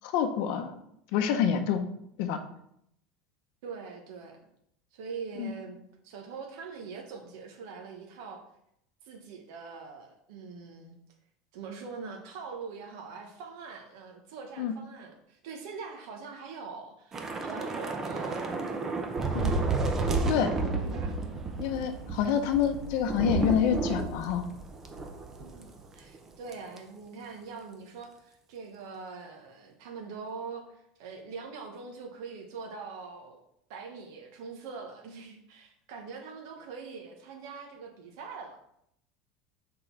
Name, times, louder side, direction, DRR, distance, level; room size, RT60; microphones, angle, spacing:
voice 1, 0.0-0.7 1.1-1.8 2.2-2.4 5.4-5.5 14.6-14.7 19.3-19.6 20.3-20.5 21.6-24.4, left 8 dB, 50° left, 6 dB, 0.7 m, -27 dB
voice 2, 3.6-4.4 4.9-8.4 9.0-10.9 11.5-18.5 20.8-21.2 22.4-22.6 25.4-33.4 33.7-38.6, right 5 dB, 65° right, 2 dB, 1.0 m, -43 dB
Thunder / Rain, 17.1-25.7 26.0-26.2 26.5-26.8, right 3 dB, 15° right, 0.5 m, -31 dB
6.1 x 3.8 x 4.5 m, 0.74 s
cardioid pair, 175°, 2 cm